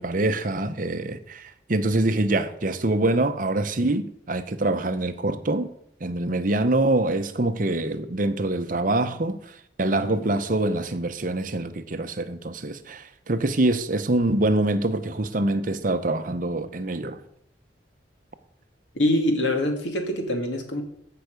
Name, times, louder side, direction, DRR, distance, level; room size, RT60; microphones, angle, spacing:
voice 1, 0.0-5.7 6.0-9.4 9.8-17.2, right 2 dB, 45° right, 0.8 m, -25 dB
voice 2, 18.9-20.8, left 1 dB, 75° left, 2.1 m, -24 dB
14.5 x 5.8 x 5.2 m
head